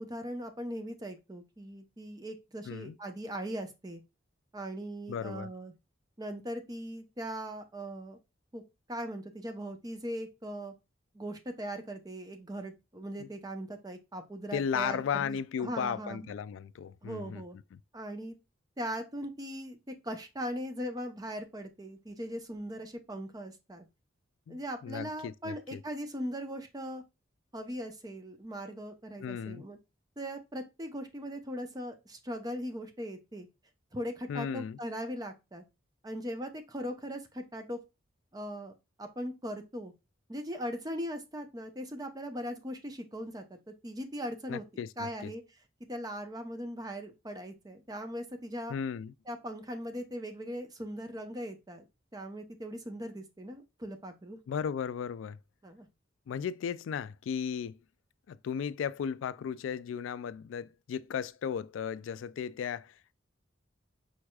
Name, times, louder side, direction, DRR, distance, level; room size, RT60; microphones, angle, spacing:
voice 1, 0.0-4.0 4.5-5.7 6.2-8.2 8.5-8.6 8.9-10.7 11.1-16.3 17.0-17.6 17.9-18.3 18.8-23.8 24.5-27.0 27.5-29.8 30.2-33.5 33.9-35.6 36.0-37.8 38.3-38.7 39.0-39.9 40.3-44.6 45.0-45.4 45.9-48.8 49.3-51.8 52.1-54.4 55.6-55.9, equal, 20° right, 0.6 m, -39 dB
voice 2, 2.7-3.0 5.1-5.5 13.2-13.3 14.5-17.4 17.7-17.8 24.5-25.8 29.2-29.6 34.3-34.8 44.5-45.3 48.7-49.1 54.5-55.4 56.3-57.8 58.3-62.9, left 7 dB, 80° left, 0.3 m, -35 dB
4.7 x 4.3 x 2.3 m
head